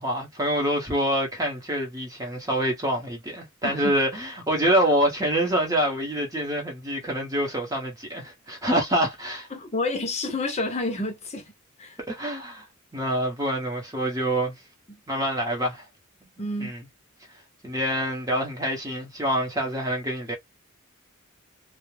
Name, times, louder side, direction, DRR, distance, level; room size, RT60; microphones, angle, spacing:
voice 1, 0.0-9.5 12.1-12.6 12.9-14.6 15.1-15.8 16.6-16.8 17.6-20.3, right 1 dB, 15° right, 0.8 m, -26 dB
voice 2, 3.6-4.0 9.5-11.5 11.8-12.0 14.9-15.0 16.4-16.7, left 2 dB, 30° left, 0.6 m, -29 dB
2.3 x 2.1 x 3.1 m
head